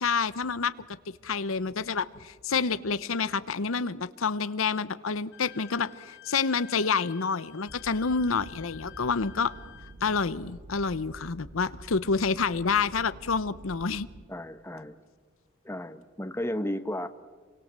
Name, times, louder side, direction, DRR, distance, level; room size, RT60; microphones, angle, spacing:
voice 1, 0.0-0.7 1.2-9.5 10.0-14.1, left 5 dB, 80° left, 15 dB, 0.8 m, -28 dB
Wind instrument woodwind instrument, 5.3-10.0, left 13 dB, 60° left, 2.4 m, -50 dB
sound 1, 7.7-14.2, right 1 dB, 80° right, 1.5 m, -48 dB
voice 2, 14.3-14.9 15.6-17.1, left 1 dB, 10° left, 10 dB, 1.1 m, -33 dB
28.0 x 24.5 x 7.5 m, 1.4 s
head